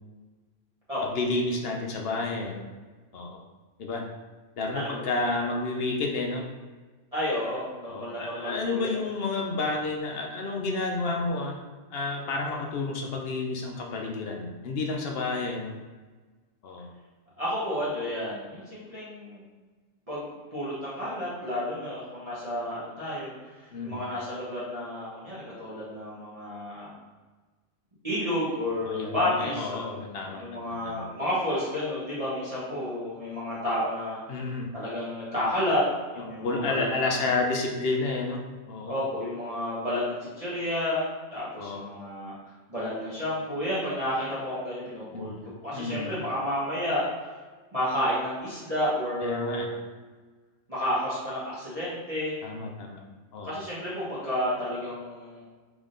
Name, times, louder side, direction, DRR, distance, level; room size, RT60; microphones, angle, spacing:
voice 1, 1.0-2.6 3.1-3.4 3.8-4.1 4.6-6.4 7.8-11.6 11.9-15.7 16.6-16.9 23.7-24.0 28.8-31.1 34.3-34.7 36.2-38.4 38.7-39.0 41.6-41.8 45.1-45.4 45.7-46.1 49.2-49.7 52.4-53.0 53.3-53.5, left 3 dB, 60° left, 1 dB, 0.8 m, -30 dB
voice 2, 4.7-5.1 7.1-8.9 17.4-19.4 20.1-20.2 20.5-23.3 23.6-26.9 28.0-30.0 30.3-34.2 34.7-35.8 36.1-37.2 38.9-41.0 41.3-42.3 42.7-45.3 45.6-47.0 47.7-49.8 50.7-52.3 53.4-55.4, left 1 dB, 30° right, -10 dB, 1.1 m, -31 dB
3.6 x 3.5 x 3.8 m, 1.3 s
omnidirectional pair, 1.3 m